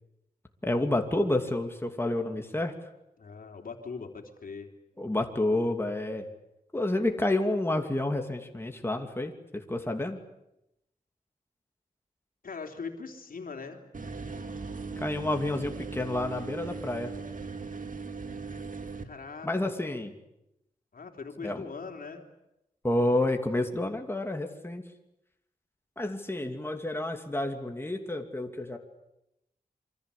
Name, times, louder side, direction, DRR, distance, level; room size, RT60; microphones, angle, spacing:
voice 1, 0.6-2.7 5.0-6.3 6.7-10.2 15.0-17.1 19.4-20.1 21.4-21.7 22.8-24.9 26.0-28.8, left 1 dB, 15° left, 4 dB, 2.7 m, -29 dB
voice 2, 3.2-4.7 12.4-13.8 19.0-19.7 20.9-22.3, left 4 dB, 75° left, 3 dB, 3.5 m, -41 dB
sound 1, 13.9-19.0, right 4 dB, 65° right, 2.5 m, -38 dB
26.5 x 24.5 x 8.5 m, 0.87 s
wide cardioid pair, 80°, 15 cm